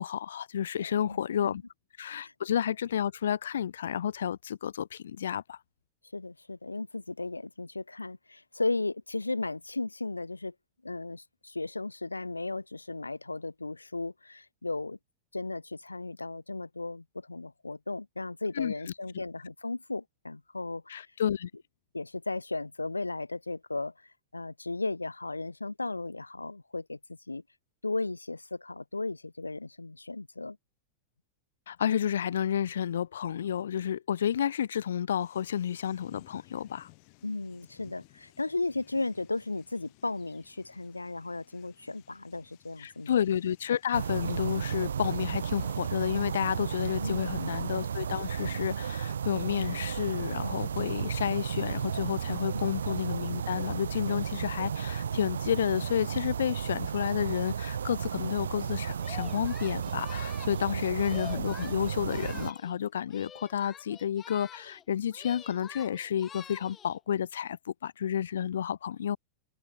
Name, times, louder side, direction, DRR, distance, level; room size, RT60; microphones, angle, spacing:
voice 1, 0.0-1.6 2.0-5.6 18.5-18.7 20.9-21.5 31.7-36.9 42.8-69.2, left 9 dB, 65° left, 1.0 m, -31 dB
voice 2, 0.8-1.2 1.4-1.5 2.2-2.3 6.1-10.5 10.8-15.0 15.3-21.1 21.9-27.0 27.3-27.4 27.8-30.6 37.2-43.1 47.0-47.2 60.7-60.9, left 3 dB, 80° left, 1.3 m, -35 dB
sound 1, 35.2-46.6, left 40 dB or more, 45° left, 4.1 m, -60 dB
sound 2, 43.9-62.5, right 7 dB, 70° right, 0.4 m, -33 dB
Singing, 59.0-62.8 63.1-64.8 65.1-67.0, left 8 dB, 25° left, 2.1 m, -48 dB
figure-of-eight pair, 90°, 0 cm